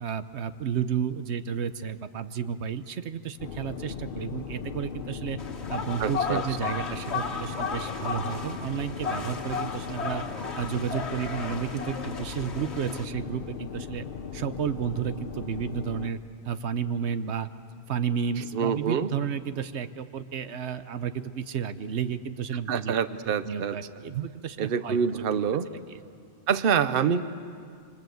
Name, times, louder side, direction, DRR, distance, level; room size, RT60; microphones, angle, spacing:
voice 1, 0.0-5.4 5.7-10.2 10.6-14.0 14.3-16.2 16.4-17.5 17.9-22.9 23.3-25.0 25.3-25.4 25.7-26.0, right 7 dB, 90° right, 11 dB, 1.1 m, -32 dB
sound 1, 3.4-16.1, left 6 dB, 60° left, 1.0 m, -38 dB
sound 2, 5.4-13.0, left 5 dB, 80° left, 1.8 m, -34 dB
voice 2, 6.0-6.4 18.4-19.1 22.7-23.8 24.6-25.7 26.5-27.2, right 7 dB, 60° right, 12 dB, 1.0 m, -26 dB
27.0 x 25.5 x 7.9 m, 2.3 s
omnidirectional pair, 1.1 m